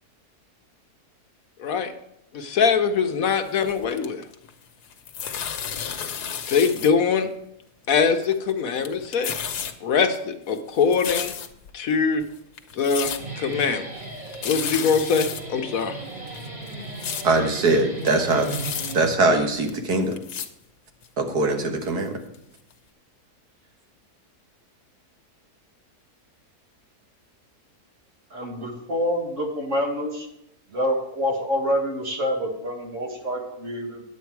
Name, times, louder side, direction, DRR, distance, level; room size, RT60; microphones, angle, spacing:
voice 1, 1.6-1.9 2.3-4.2 6.5-7.3 7.9-9.4 9.8-11.3 11.7-12.2 12.8-13.9 14.4-16.0, left 6 dB, 65° left, 7 dB, 1.2 m, -22 dB
sound 1, 3.4-4.5 4.8-6.9 7.2-7.3 8.0-8.5 8.8-9.7 10.1-11.7 12.2-12.3 12.6-13.2 13.5-13.6 14.0-14.1 14.3-15.4 15.8-15.9 16.3-17.2 17.7-17.8 18.0-18.9 19.7-19.8 20.1-20.5 21.0-21.1 21.8-21.9 22.3-22.4 22.7-22.8, left 8 dB, 80° left, 1.4 m, -32 dB
Guitar, 13.1-19.6, right 2 dB, 30° right, 2.8 m, -36 dB
voice 2, 17.2-18.6 18.9-20.2 21.2-22.2, right 2 dB, 80° right, 3 dB, 2.0 m, -22 dB
voice 3, 28.3-30.3 30.7-34.0, equal, 50° right, 1 dB, 2.1 m, -27 dB
10.0 x 8.4 x 4.6 m, 0.80 s
omnidirectional pair, 1.7 m